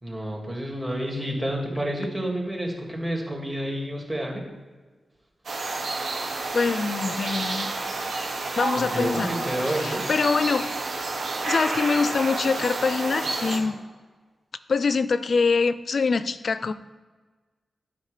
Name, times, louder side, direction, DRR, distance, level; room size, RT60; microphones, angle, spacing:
voice 1, 0.0-4.4 8.7-10.1, right 1 dB, 20° right, 0 dB, 2.1 m, -29 dB
sound 1, 5.4-13.6, right 3 dB, 75° right, 1.7 m, -30 dB
voice 2, 6.5-7.7 8.6-9.3 10.1-10.7 11.5-13.8 14.7-16.7, left 4 dB, 55° left, 14 dB, 0.4 m, -24 dB
11.5 x 5.1 x 4.9 m, 1.4 s
wide cardioid pair, 125°, 0 cm